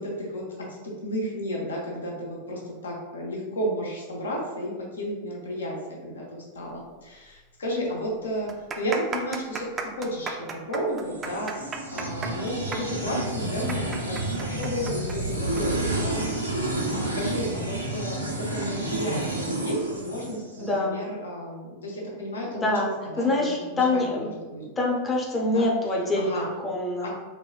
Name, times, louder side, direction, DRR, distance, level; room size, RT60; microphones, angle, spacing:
voice 1, 0.0-8.5 8.8-9.7 10.0-11.5 11.9-24.7 25.5-25.7 26.2-26.5 27.0-27.1, equal, 70° left, -2 dB, 0.8 m, -33 dB
sound 1, 7.3-7.4 7.6-7.7 8.4-15.6 15.9-16.0 16.8-17.0, right 4 dB, 20° right, 0.4 m, -35 dB
sound 2, 11.0-20.7, right 2 dB, 85° right, 0.5 m, -30 dB
voice 2, 20.6-21.0 22.5-22.9 23.2-24.3 24.8-27.1, left 2 dB, 20° left, -1 dB, 0.7 m, -25 dB
4.2 x 2.2 x 2.3 m, 1.3 s
figure-of-eight pair, 90°, 0 cm